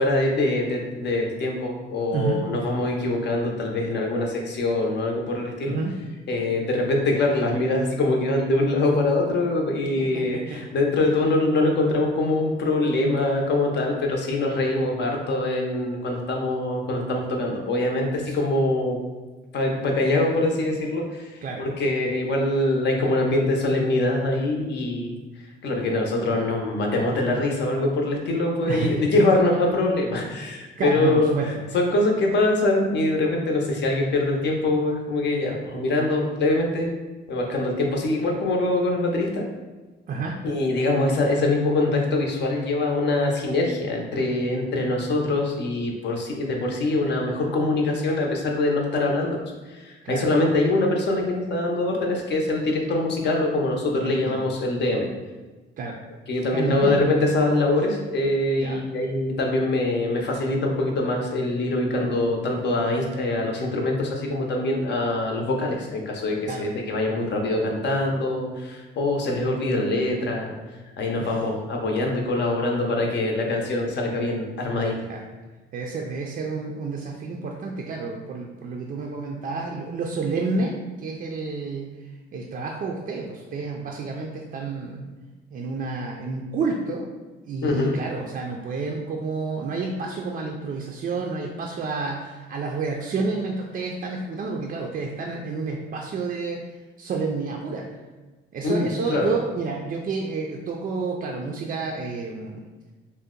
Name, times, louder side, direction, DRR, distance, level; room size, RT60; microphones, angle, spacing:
voice 1, 0.0-5.8 6.3-19.0 19.5-25.2 25.6-36.9 37.3-39.4 40.4-55.1 56.3-70.5 71.0-75.0 87.6-88.0 98.6-99.3, left 2 dB, 60° left, 1 dB, 0.6 m, -24 dB
voice 2, 2.1-2.4 5.7-6.0 10.0-10.6 18.3-18.4 21.4-21.7 28.6-29.0 30.8-31.5 40.1-40.4 50.0-50.3 54.0-54.4 55.8-56.0 56.5-57.2 58.6-58.8 66.5-66.7 71.2-71.3 75.1-75.2 75.7-81.9 82.3-85.1 85.5-87.1 87.4-96.6 97.0-97.9 98.5-102.6, right 4 dB, 45° right, 0 dB, 0.4 m, -30 dB
2.7 x 2.1 x 3.6 m, 1.3 s
cardioid pair, 90°, 20 cm